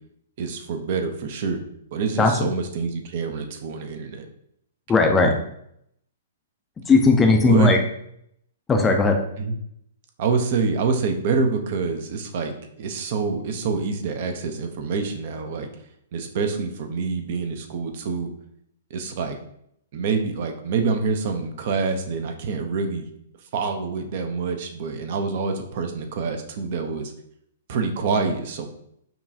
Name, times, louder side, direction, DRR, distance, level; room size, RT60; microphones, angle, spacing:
voice 1, 0.4-1.6 1.9-4.3 7.5-7.7 9.4-9.5 10.2-15.7 16.1-18.3 18.9-19.4 19.9-23.1 23.5-27.1 27.7-28.7, right 4 dB, 45° right, 5 dB, 0.5 m, -26 dB
voice 2, 2.2-2.5 4.9-5.3 6.9-7.8 8.7-9.2, left 3 dB, 15° left, 3 dB, 0.4 m, -17 dB
5.4 x 2.3 x 2.6 m, 0.72 s
figure-of-eight pair, 110°, 0 cm